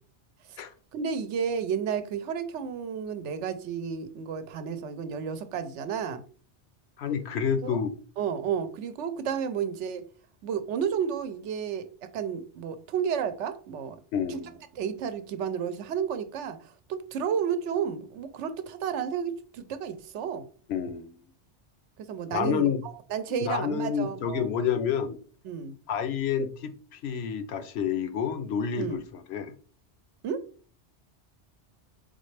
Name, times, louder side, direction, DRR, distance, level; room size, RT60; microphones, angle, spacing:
voice 1, 0.9-6.2 7.6-7.8 8.2-10.0 10.4-14.0 14.3-14.4 14.7-20.5 22.0-24.5 25.4-25.8 28.8-29.0 30.2-30.4, right 7 dB, 85° right, 0.9 m, -32 dB
voice 2, 7.0-7.9 14.1-14.5 20.7-21.2 22.3-22.8 23.4-25.2 25.9-29.0 29.3-29.5, left 7 dB, 70° left, 0.8 m, -29 dB
4.1 x 3.8 x 3.2 m
omnidirectional pair, 1.2 m